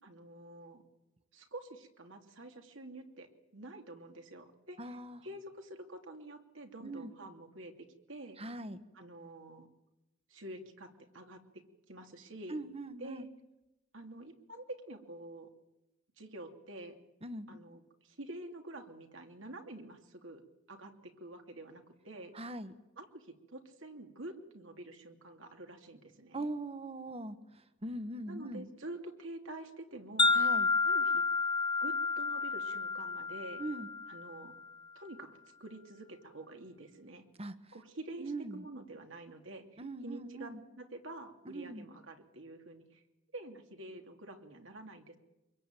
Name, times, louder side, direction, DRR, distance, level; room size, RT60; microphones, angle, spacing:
voice 1, 0.0-0.8 1.3-5.0 5.2-8.4 8.9-9.7 10.3-11.6 11.9-12.6 13.0-13.3 13.9-15.5 16.2-17.0 17.5-20.4 20.7-22.3 23.0-26.5 28.3-30.4 30.8-31.2 31.8-33.6 34.1-34.5 34.9-35.3 35.6-37.2 37.7-43.0 43.3-45.2, right 1 dB, 70° right, 4 dB, 2.8 m, -48 dB
voice 2, 4.8-5.3 6.8-7.1 8.4-8.8 12.5-13.3 17.2-17.5 22.3-22.7 26.3-28.7 30.3-30.7 33.6-33.9 37.4-37.5 38.2-38.6 39.8-40.6 41.4-41.8, right 2 dB, 30° right, 11 dB, 1.4 m, -41 dB
Wind chime, 30.2-34.5, left 4 dB, 25° left, 0.8 m, -30 dB
24.5 x 22.5 x 9.1 m, 0.99 s
head